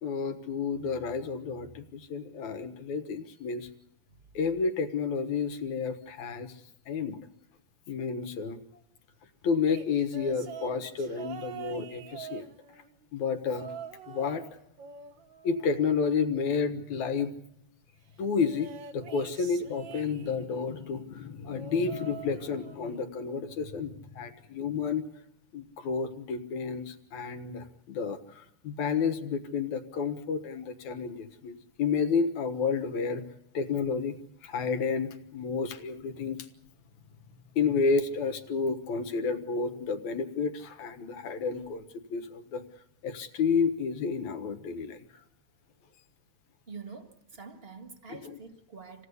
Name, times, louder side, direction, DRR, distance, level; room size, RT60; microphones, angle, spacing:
voice 1, 0.0-3.7 4.3-6.5 6.9-7.2 7.9-8.6 9.4-12.5 13.1-13.7 14.1-14.4 15.4-17.3 18.2-25.0 25.5-33.2 33.5-34.2 34.4-36.5 37.6-41.9 42.1-42.6 43.0-45.0 48.1-48.4, left 5 dB, 75° left, 2.8 m, -31 dB
sound 1, 9.6-13.0 13.5-14.5 14.8-16.3 18.4-20.6 21.4-22.9 23.3-23.6 24.8-24.9, right 7 dB, 60° right, 1.2 m, -45 dB
voice 2, 46.7-47.1 47.4-49.1, right 5 dB, 25° right, 1.6 m, -45 dB
27.5 x 17.0 x 8.3 m
omnidirectional pair, 3.4 m